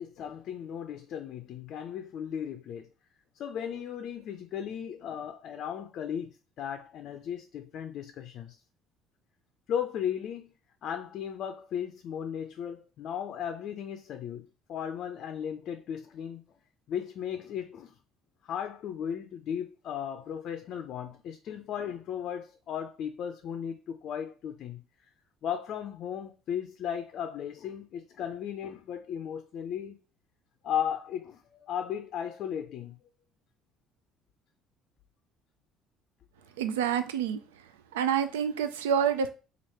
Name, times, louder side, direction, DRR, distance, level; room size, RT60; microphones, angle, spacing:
voice 1, 0.0-2.9 3.4-8.6 9.7-10.5 10.8-16.4 16.9-17.9 18.4-24.8 25.4-30.0 30.6-33.0, left 9 dB, 60° left, 0.4 m, -36 dB
voice 2, 36.6-37.4 37.9-39.3, right 8 dB, 90° right, 0.3 m, -27 dB
3.1 x 2.5 x 4.2 m
hypercardioid pair, 65°, 0 cm